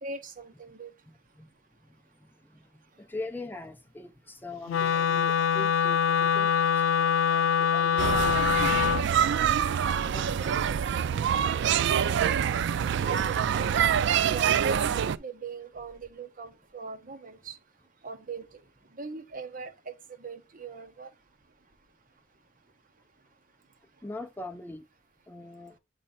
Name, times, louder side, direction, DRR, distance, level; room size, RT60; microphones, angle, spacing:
voice 1, 0.0-0.9 13.0-13.7 14.0-17.6 18.0-18.5 19.0-19.9 20.2-21.1, right 4 dB, 45° right, 1.0 m, -40 dB
voice 2, 1.8-2.6 3.0-10.6 24.0-24.9 25.3-25.8, left 2 dB, 10° left, 0.5 m, -43 dB
Wind instrument woodwind instrument, 4.7-9.1, left 7 dB, 80° left, 0.3 m, -24 dB
sound 1, 8.0-15.2, right 8 dB, 65° right, 0.3 m, -25 dB
8.8 x 3.2 x 4.1 m
head